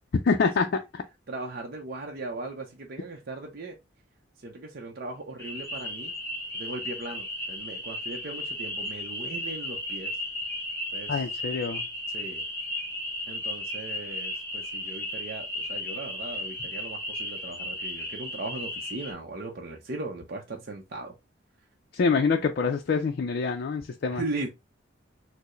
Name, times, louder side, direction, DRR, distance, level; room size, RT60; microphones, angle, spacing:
voice 1, 0.2-1.0 11.1-11.8 21.9-24.2, left 5 dB, 55° left, 0.4 m, -26 dB
voice 2, 1.3-3.8 4.4-6.1 6.5-10.2 10.9-11.3 12.1-12.4 13.3-21.1 24.1-24.5, right 2 dB, 55° right, 0.6 m, -38 dB
sound 1, 5.4-19.1, left 1 dB, 15° left, 1.1 m, -35 dB
4.5 x 2.0 x 3.0 m
head